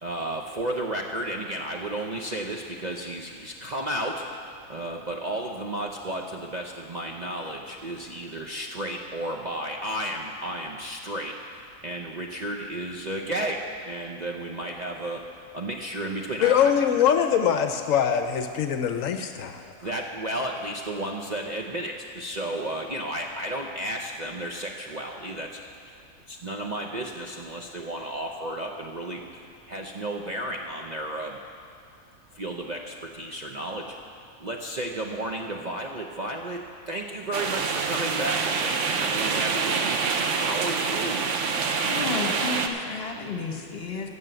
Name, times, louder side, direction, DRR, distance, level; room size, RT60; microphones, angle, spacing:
voice 1, 0.0-15.2 15.5-16.7 19.6-25.6 25.9-26.0 26.3-29.2 29.7-31.4 32.3-34.0 34.4-40.0 40.3-41.3, right 1 dB, 40° right, 0 dB, 0.6 m, -33 dB
voice 2, 16.4-19.6, left 8 dB, 70° left, 7 dB, 1.0 m, -23 dB
sound 1, 37.3-42.7, right 5 dB, 60° right, 1.1 m, -26 dB
voice 3, 41.8-44.1, left 4 dB, 45° left, 2 dB, 1.4 m, -32 dB
15.0 x 6.2 x 8.1 m, 2.6 s
omnidirectional pair, 1.5 m